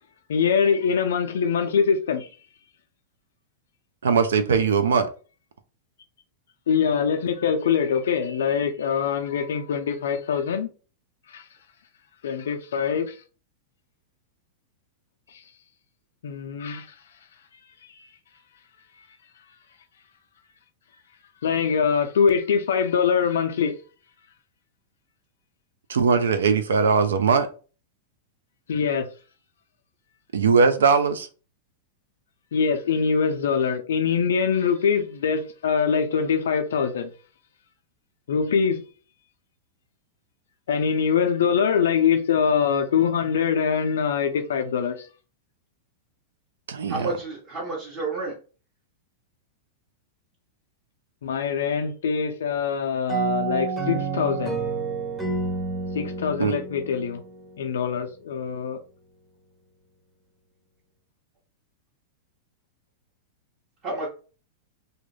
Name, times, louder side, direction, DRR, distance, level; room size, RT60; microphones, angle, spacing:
voice 1, 0.3-2.3 6.7-10.7 11.3-11.5 12.2-13.2 15.3-15.4 16.2-16.9 21.4-23.8 28.7-29.1 32.5-37.1 38.3-38.8 40.7-45.1 51.2-54.6 55.9-57.2 57.6-58.8, left 6 dB, 85° left, 0.3 m, -23 dB
voice 2, 4.0-5.1 25.9-27.5 30.3-31.3 46.7-47.1 56.4-56.6, right 5 dB, 90° right, 0.4 m, -20 dB
voice 3, 46.9-48.3 63.8-64.1, right 3 dB, 40° right, 0.9 m, -30 dB
sound 1, 53.1-57.7, right 4 dB, 10° right, 0.7 m, -29 dB
2.3 x 2.1 x 3.1 m
hypercardioid pair, 125°, 0 cm